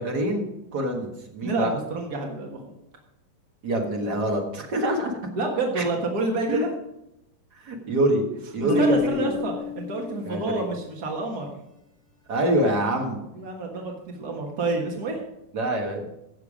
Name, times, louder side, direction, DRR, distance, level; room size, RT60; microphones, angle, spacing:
voice 1, 0.0-1.7 3.6-5.1 5.7-5.8 6.5-6.7 7.6-8.2 8.5-9.3 10.2-10.6 12.3-13.2 15.5-16.1, right 1 dB, 45° right, 0 dB, 1.3 m, -25 dB
voice 2, 1.4-2.6 5.3-6.7 8.8-11.5 13.3-15.2, right 3 dB, 65° right, 1 dB, 0.9 m, -28 dB
Marimba xylophone, 8.7-10.7, left 2 dB, 65° left, 6.2 m, -28 dB
16.5 x 6.8 x 5.0 m, 0.86 s
omnidirectional pair, 4.2 m